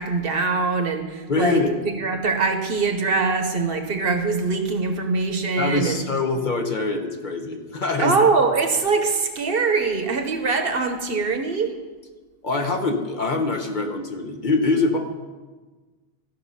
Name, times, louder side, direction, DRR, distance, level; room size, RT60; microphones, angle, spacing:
voice 1, 0.0-6.0 8.0-11.7, right 4 dB, 60° right, 6 dB, 1.1 m, -23 dB
voice 2, 1.3-1.7 5.6-8.2 12.4-15.0, left 3 dB, 45° left, 4 dB, 1.0 m, -24 dB
13.5 x 5.5 x 5.5 m, 1.3 s
omnidirectional pair, 1.1 m